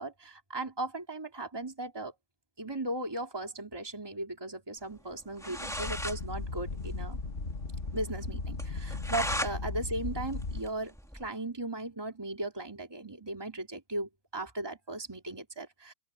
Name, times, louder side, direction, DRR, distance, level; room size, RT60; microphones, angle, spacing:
voice 1, 0.0-2.1 2.6-7.2 7.9-15.9, right 2 dB, 15° right, 2.9 m, -37 dB
sound 1, 5.1-5.2 5.4-6.2 6.5-6.6 6.9-7.0 7.4-7.5 7.9-8.0 8.6-9.5 9.9-11.3, equal, ahead, 2.5 m, -36 dB
sound 2, 5.4-10.6, left 3 dB, 40° left, 1.7 m, -37 dB
open air
omnidirectional pair, 1.7 m